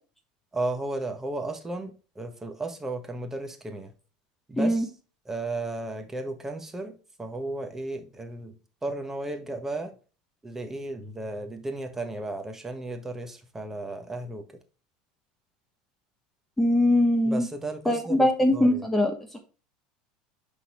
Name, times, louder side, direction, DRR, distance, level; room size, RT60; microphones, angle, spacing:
voice 1, 0.5-3.9 4.5-4.9 5.2-8.5 8.8-9.9 10.4-14.4 17.2-18.3 18.5-18.8, right 2 dB, 15° right, 1.3 m, -34 dB
voice 2, 16.6-17.5 17.9-19.4, left 1 dB, 10° left, 1.1 m, -22 dB
9.9 x 3.9 x 3.1 m
supercardioid pair, 115°, 3 cm